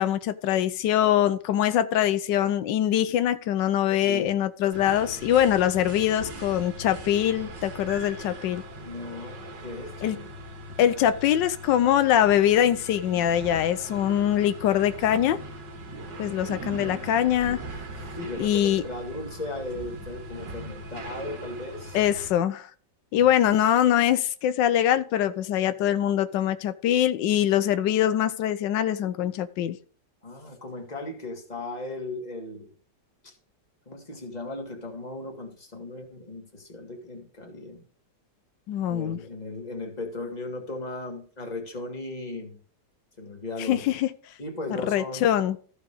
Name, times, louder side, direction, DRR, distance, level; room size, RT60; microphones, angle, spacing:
voice 1, 0.0-8.6 10.0-10.2 10.8-15.4 16.2-17.6 18.4-18.8 21.9-22.7 23.1-29.8 38.7-39.2 43.6-44.1 44.9-45.6, left 11 dB, 90° left, 1.4 m, -23 dB
sound 1, 4.7-22.3, right 1 dB, 80° right, 2.3 m, -40 dB
voice 2, 8.8-10.3 18.1-22.0 23.1-23.5 30.2-32.7 33.2-33.3 33.9-37.8 38.9-42.6 43.2-43.9 44.4-45.3, left 2 dB, 25° left, 2.1 m, -37 dB
14.5 x 5.0 x 4.9 m
omnidirectional pair, 1.9 m